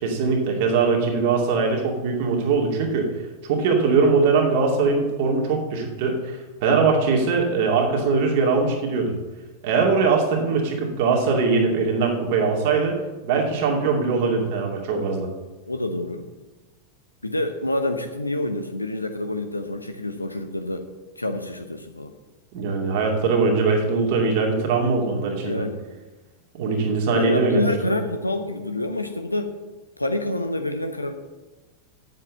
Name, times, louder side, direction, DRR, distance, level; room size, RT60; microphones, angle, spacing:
voice 1, 0.0-3.1 3.4-9.1 9.6-12.9 13.2-15.3 22.5-25.6 26.5-27.9, right 4 dB, 50° right, 1 dB, 2.4 m, -21 dB
voice 2, 15.7-16.2 17.2-20.9 21.2-22.1 25.4-25.9 27.1-29.5 30.0-31.1, left 2 dB, 85° left, 7 dB, 0.8 m, -27 dB
7.8 x 7.6 x 7.4 m, 1.2 s
figure-of-eight pair, 90°, 0 cm